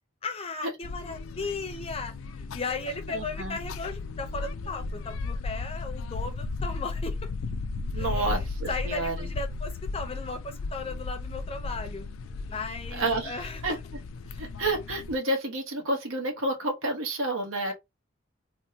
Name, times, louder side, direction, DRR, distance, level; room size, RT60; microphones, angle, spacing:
voice 1, 0.2-7.2 7.9-8.4 8.7-12.1 12.5-13.6 14.2-14.5 17.7-17.8, left 3 dB, 30° left, 0.5 m, -36 dB
sound 1, 0.8-15.2, left 3 dB, 85° left, 0.4 m, -35 dB
voice 2, 3.1-3.6 7.9-9.3 12.9-13.8 14.4-17.7, right 2 dB, 85° right, 1.0 m, -30 dB
3.5 x 2.1 x 2.7 m
head